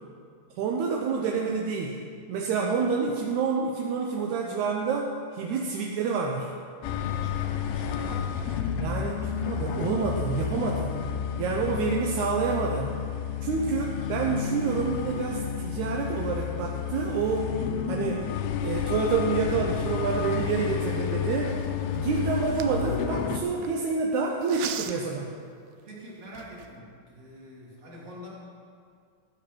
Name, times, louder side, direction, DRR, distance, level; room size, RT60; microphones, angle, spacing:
voice 1, 0.6-2.0 2.3-6.5 8.8-10.9 11.4-12.9 13.4-17.5 17.9-18.3 18.6-21.6 21.9-25.3, right 5 dB, 70° right, 0 dB, 1.9 m, -28 dB
sound 1, 6.8-23.4, left 8 dB, 85° left, 2.5 m, -31 dB
voice 2, 6.9-8.8 10.7-11.1 11.5-12.0 13.6-14.1 25.8-28.3, equal, 40° right, -6 dB, 3.6 m, -46 dB
sound 2, 19.7-23.7 24.4-25.2 25.8-25.9 26.2-26.8, right 10 dB, 90° right, 2.5 m, -41 dB
13.5 x 8.1 x 6.1 m, 2.2 s
omnidirectional pair, 4.1 m